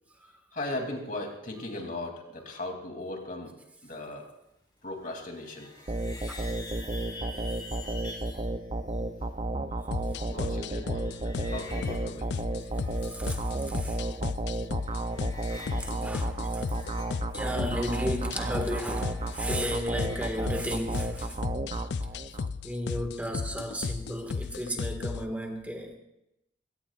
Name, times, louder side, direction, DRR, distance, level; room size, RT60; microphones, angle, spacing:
voice 1, 0.5-3.5 3.8-4.3 4.8-5.7 10.3-12.3 22.4-22.5, left 2 dB, 45° left, 2 dB, 2.9 m, -38 dB
sound 1, 5.1-8.5 9.8-13.2 13.5-14.3 14.6-15.9 16.2-20.6, left 2 dB, 25° left, 4.1 m, -47 dB
sound 2, 5.9-22.5, right 2 dB, 30° right, 0.6 m, -33 dB
sound 3, 9.9-25.3, left 4 dB, 70° left, 0.5 m, -35 dB
voice 2, 13.0-14.0 15.8-16.7 17.3-21.4 22.6-26.0, equal, 10° right, 3 dB, 1.8 m, -34 dB
22.0 x 17.5 x 2.5 m, 0.86 s
head